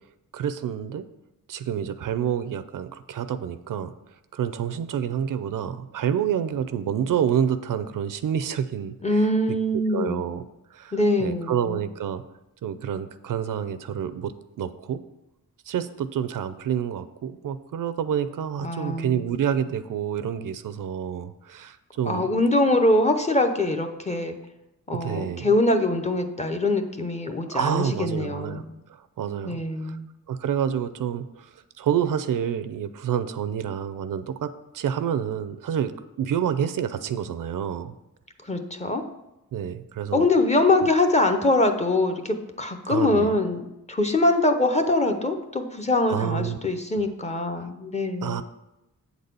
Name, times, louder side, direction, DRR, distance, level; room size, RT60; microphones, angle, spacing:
voice 1, 0.3-1.0 1.5-3.9 4.3-10.4 10.7-12.2 12.6-15.0 15.7-22.3 24.9-25.5 27.5-28.6 28.9-30.0 30.3-35.9 36.2-37.9 39.5-40.3 42.9-43.3 46.1-46.6 47.6-47.7 48.2-48.4, right 9 dB, 70° right, 12 dB, 0.5 m, -28 dB
voice 2, 9.0-10.3 10.9-11.8 18.6-19.5 22.1-24.4 24.9-28.6 29.4-30.0 38.4-39.0 40.1-48.4, left 2 dB, 20° left, 5 dB, 0.7 m, -23 dB
8.2 x 4.1 x 6.7 m, 0.93 s
wide cardioid pair, 135°, 33 cm